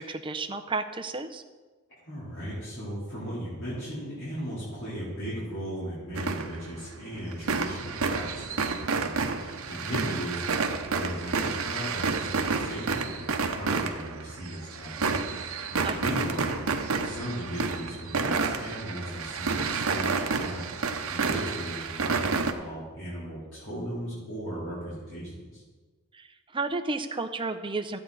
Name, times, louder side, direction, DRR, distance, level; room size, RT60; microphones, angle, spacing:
voice 1, 0.0-1.4 10.0-10.1 15.8-16.1 26.1-26.3 26.5-28.0, right 3 dB, 25° right, 7 dB, 0.7 m, -32 dB
voice 2, 2.0-16.6 16.9-25.6, equal, 60° left, -11 dB, 4.0 m, -37 dB
sound 1, 6.1-6.9 7.1-22.5, right 4 dB, 70° right, 0.9 m, -30 dB
14.0 x 8.8 x 4.1 m, 1.4 s
head